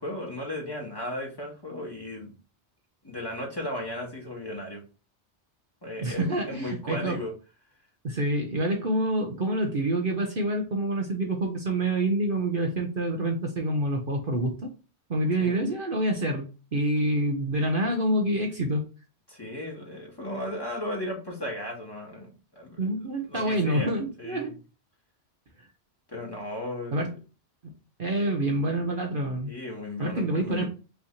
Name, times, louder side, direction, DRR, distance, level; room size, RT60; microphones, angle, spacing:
voice 1, 0.0-2.3 3.0-4.8 5.8-7.3 15.4-15.6 19.3-22.3 22.6-22.8 23.3-24.5 26.1-27.1 28.2-28.3 29.4-30.7, left 1 dB, 20° left, -2 dB, 1.9 m, -35 dB
voice 2, 6.0-7.2 8.0-14.5 15.1-16.5 16.7-18.8 22.8-24.5 26.9-27.1 28.0-29.5 30.0-30.6, right 1 dB, 50° right, 3 dB, 1.0 m, -27 dB
5.7 x 3.3 x 2.8 m, 0.33 s
omnidirectional pair, 1.2 m